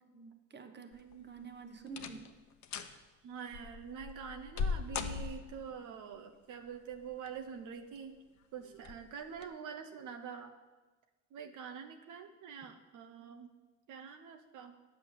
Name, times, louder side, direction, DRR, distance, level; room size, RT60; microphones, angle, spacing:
voice 1, 0.1-2.2, right 5 dB, 35° right, 7 dB, 1.2 m, -48 dB
sound 1, 0.9-1.4 1.9-2.3 2.6-3.0 3.5-5.7 6.9-7.5 8.0-8.1 8.8-9.0 9.4-9.5, left 6 dB, 70° left, 0.8 m, -39 dB
voice 2, 2.8-8.2 8.5-10.5 11.3-13.5 13.9-14.8, right 7 dB, 80° right, 5 dB, 0.9 m, -46 dB
8.6 x 6.8 x 7.4 m, 1.2 s
cardioid pair, 90°, 30 cm